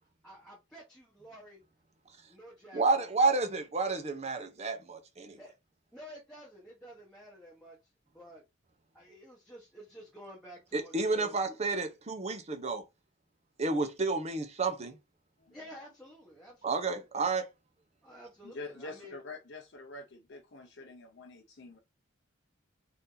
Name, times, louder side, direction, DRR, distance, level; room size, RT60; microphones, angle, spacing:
voice 1, 0.2-1.6 2.3-3.1 5.4-5.5 5.9-8.4 8.9-11.6 15.5-17.0 18.0-19.2, equal, 5° left, 1.0 m, -51 dB
voice 2, 2.7-5.4 10.7-12.8 13.6-15.0 16.6-17.5, right 3 dB, 35° right, 0.7 m, -30 dB
voice 3, 18.4-21.8, left 3 dB, 60° left, 0.6 m, -46 dB
4.1 x 2.7 x 3.8 m
head